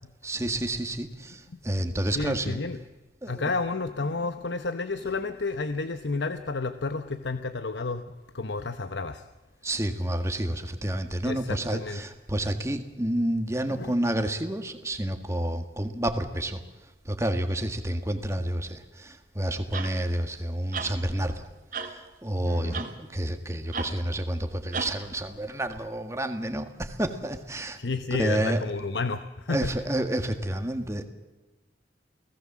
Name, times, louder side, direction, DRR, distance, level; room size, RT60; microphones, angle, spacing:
voice 1, 0.2-2.6 3.2-3.5 9.6-16.6 17.1-21.5 21.8-27.8 28.2-28.6 29.5-31.1, right 1 dB, 15° right, 7 dB, 1.8 m, -29 dB
voice 2, 2.1-2.8 3.3-9.2 11.2-12.0 13.7-13.9 22.4-22.8 27.8-29.7, left 3 dB, 80° left, 10 dB, 1.0 m, -31 dB
sound 1, 19.7-20.0 20.7-21.0 21.7-22.0 22.7-23.0 23.7-24.0 24.7-25.0 25.7-25.8, right 5 dB, 45° right, 2.3 m, -33 dB
29.0 x 18.5 x 7.5 m, 1.2 s
head